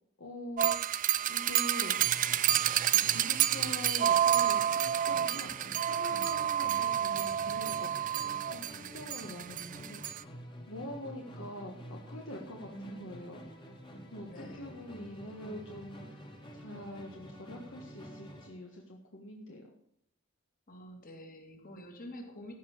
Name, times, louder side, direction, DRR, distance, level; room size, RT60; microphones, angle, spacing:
voice 1, 0.2-0.7 1.2-2.1 2.9-7.9 8.2-10.0 10.7-13.4 14.1-16.2 16.5-19.7, left 1 dB, 60° left, 0 dB, 1.5 m, -44 dB
sound 1, 0.6-10.2, right 11 dB, 40° right, 0.4 m, -29 dB
Musical instrument, 1.9-18.6, equal, 25° left, 1.9 m, -49 dB
voice 2, 12.7-13.2 14.3-14.7 20.7-22.5, equal, 40° left, 2 dB, 2.6 m, -47 dB
14.5 x 5.5 x 7.9 m, 0.72 s
head